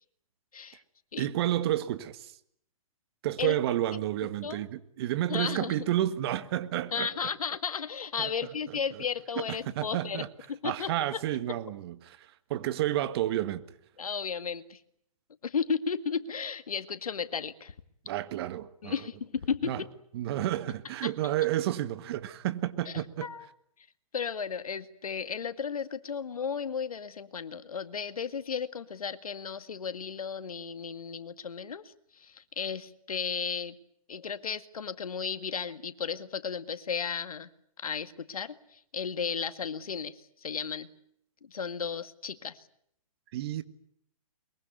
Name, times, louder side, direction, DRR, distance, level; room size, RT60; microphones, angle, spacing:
voice 1, 1.2-2.4 3.2-7.1 8.2-8.3 9.4-10.3 10.6-13.6 18.1-19.0 19.7-19.8 20.1-23.3 43.3-43.6, right 13 dB, 45° right, 1.7 m, -30 dB
voice 2, 5.3-5.9 6.9-10.9 14.0-14.8 15.4-17.7 18.8-19.9 21.0-21.1 22.9-23.5 24.1-33.8 34.1-37.5 37.8-40.9 41.4-42.7, left 6 dB, 80° left, 2.0 m, -34 dB
23.0 x 23.0 x 9.4 m
hypercardioid pair, 135°, 18 cm